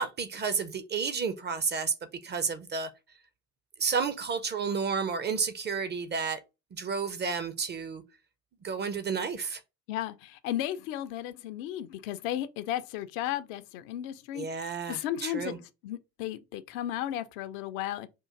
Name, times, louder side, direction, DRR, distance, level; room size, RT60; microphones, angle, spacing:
voice 1, 0.0-1.9 2.2-2.9 3.8-6.4 6.7-8.0 8.6-9.6 14.3-15.6, right 5 dB, 25° right, 0.5 m, -31 dB
voice 2, 9.9-18.1, left 12 dB, 60° left, 0.5 m, -35 dB
3.7 x 2.4 x 4.3 m
figure-of-eight pair, 50°, 44 cm